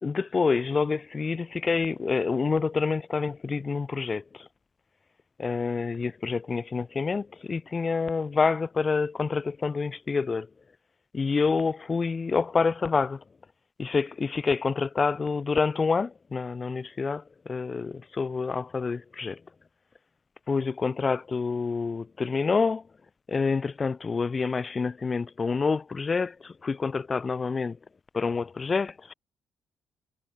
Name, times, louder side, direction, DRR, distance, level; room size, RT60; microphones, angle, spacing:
voice 1, 0.0-4.5 5.4-10.5 11.1-13.2 13.8-19.4 20.5-22.8 23.3-27.8 28.1-29.1, left 4 dB, 35° left, 3.4 m, -27 dB
cardioid pair, 90°, 0 cm